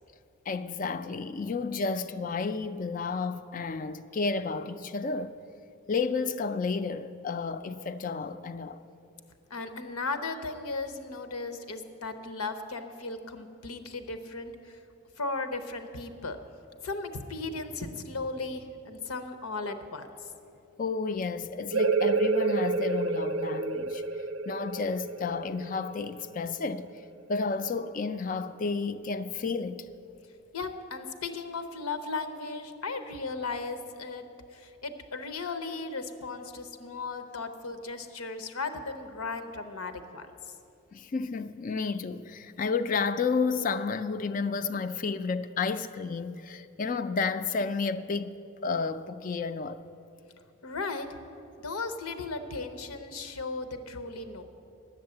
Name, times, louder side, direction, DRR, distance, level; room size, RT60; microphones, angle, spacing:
voice 1, 0.5-5.4 5.9-8.8 20.8-24.0 24.5-27.0 27.3-29.9 37.3-37.4 40.9-49.8, left 4 dB, 35° left, 0.3 m, -31 dB
voice 2, 9.5-14.8 15.2-16.4 16.8-20.1 30.5-34.2 34.5-40.5 50.6-51.2 51.6-54.4, left 3 dB, 85° left, 0.9 m, -36 dB
sound 1, 21.7-27.1, right 4 dB, 65° right, 0.5 m, -29 dB
10.5 x 7.9 x 7.6 m
head